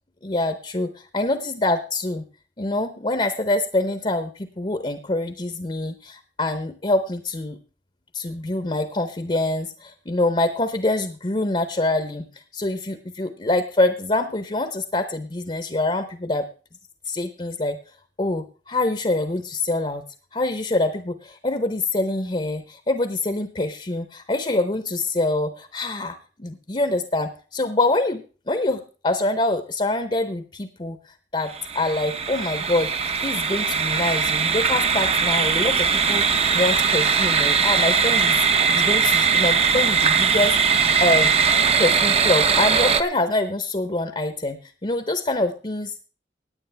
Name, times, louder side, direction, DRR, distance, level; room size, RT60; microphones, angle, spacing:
voice 1, 0.2-2.3 2.6-7.6 8.1-12.3 12.5-16.5 17.0-17.8 18.2-20.0 20.3-32.9 33.2-36.2 36.5-40.6 41.0-41.3 41.8-45.9, left 2 dB, 30° left, 9 dB, 0.8 m, -25 dB
sound 1, 31.5-43.0, right 6 dB, 35° right, 0.8 m, -20 dB
17.5 x 9.6 x 3.4 m, 0.37 s
head